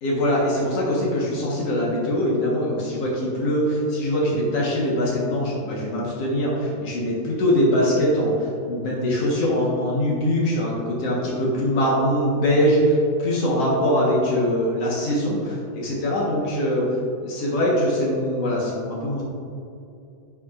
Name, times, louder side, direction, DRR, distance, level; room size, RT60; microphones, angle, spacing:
voice 1, 0.0-16.9 17.2-19.2, equal, 65° left, -5 dB, 1.5 m, -22 dB
10.5 x 7.2 x 2.5 m, 2.5 s
omnidirectional pair, 4.8 m